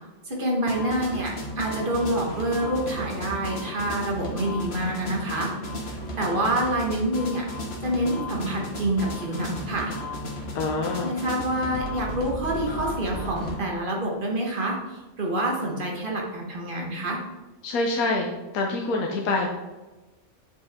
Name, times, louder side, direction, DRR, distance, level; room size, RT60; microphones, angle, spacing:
voice 1, 0.2-5.5 5.8-7.5 7.8-10.0 11.0-17.2, right 1 dB, 40° right, -1 dB, 1.5 m, -27 dB
sound 1, 0.7-13.6, left 1 dB, 50° left, 1.4 m, -34 dB
voice 2, 10.5-11.1 17.6-19.5, left 3 dB, 90° left, 0 dB, 1.2 m, -26 dB
8.2 x 5.1 x 3.6 m, 1.2 s
omnidirectional pair, 1.5 m